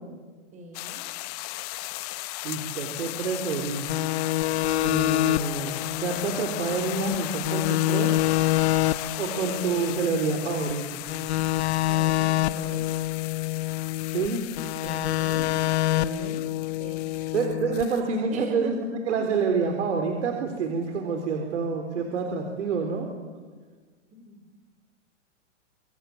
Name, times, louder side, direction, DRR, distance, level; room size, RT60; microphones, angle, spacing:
voice 1, 0.5-1.1 11.8-12.9 14.8-15.5 15.9-16.4 16.8-17.3 18.3-18.7 19.1-19.2 24.1-24.6, right 2 dB, 20° right, 7 dB, 4.6 m, -41 dB
sound 1, 0.7-18.0, left 19 dB, 30° left, 0.9 m, -37 dB
voice 2, 2.4-4.0 4.8-8.2 9.2-11.0 14.1-14.4 17.3-23.1, right 4 dB, 70° right, 3 dB, 4.0 m, -28 dB
sound 2, 3.9-7.2 7.5-10.7 11.1-14.3 14.6-17.8, left 14 dB, 60° left, 1.2 m, -27 dB
26.0 x 25.5 x 7.9 m, 1.4 s
hypercardioid pair, 150°, 37 cm